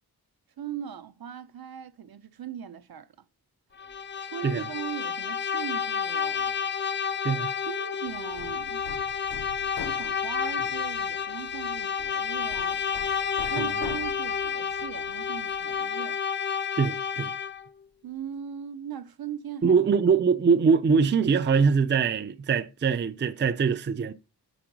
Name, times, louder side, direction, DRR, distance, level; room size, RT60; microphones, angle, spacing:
voice 1, 0.6-3.1 4.2-6.6 7.7-8.9 9.8-12.8 13.4-16.2 18.0-19.8, right 8 dB, 65° right, 0.7 m, -39 dB
Bowed string instrument, 3.8-17.7, left 7 dB, 30° left, 0.4 m, -30 dB
Hammer, 8.1-15.9, left 5 dB, 70° left, 1.0 m, -45 dB
voice 2, 16.8-17.3 19.6-24.1, right 5 dB, 30° right, 0.4 m, -23 dB
6.8 x 5.0 x 5.9 m
wide cardioid pair, 155°, 39 cm